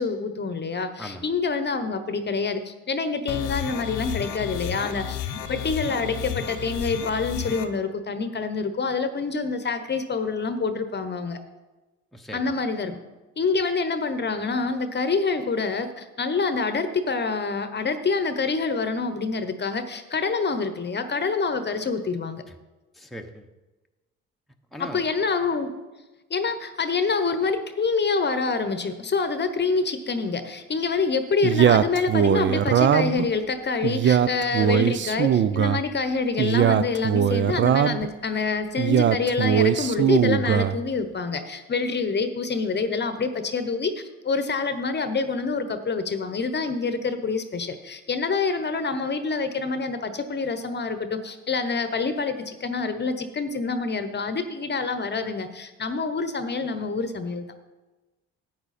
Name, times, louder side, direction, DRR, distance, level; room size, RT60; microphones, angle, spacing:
voice 1, 0.0-5.2 5.5-11.4 12.3-13.0 13.4-22.4 24.8-25.7 26.3-57.5, left 4 dB, 35° left, 10 dB, 0.9 m, -26 dB
sound 1, 3.3-7.7, left 10 dB, 80° left, 0.8 m, -32 dB
voice 2, 12.1-12.5 22.5-22.6 22.9-23.5 24.7-25.0, left 1 dB, ahead, 3 dB, 1.0 m, -39 dB
Male speech man speaking, 31.4-33.3 33.8-35.8 36.4-38.1 38.8-40.8, right 9 dB, 40° right, 0.5 m, -20 dB
10.0 x 8.9 x 4.2 m, 1.1 s
supercardioid pair, 75°, 31 cm